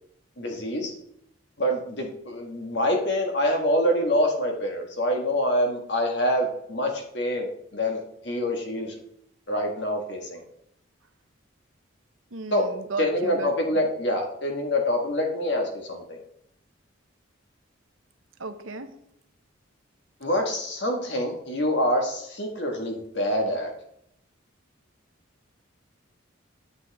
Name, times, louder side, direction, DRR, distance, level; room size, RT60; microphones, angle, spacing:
voice 1, 0.4-0.9 1.6-8.9 9.5-10.4 12.5-12.7 13.0-16.2 20.2-23.7, left 1 dB, 60° left, 2 dB, 1.6 m, -26 dB
voice 2, 12.3-13.8 18.4-18.9, right 3 dB, 85° right, 8 dB, 0.9 m, -35 dB
9.0 x 8.1 x 3.5 m, 0.74 s
head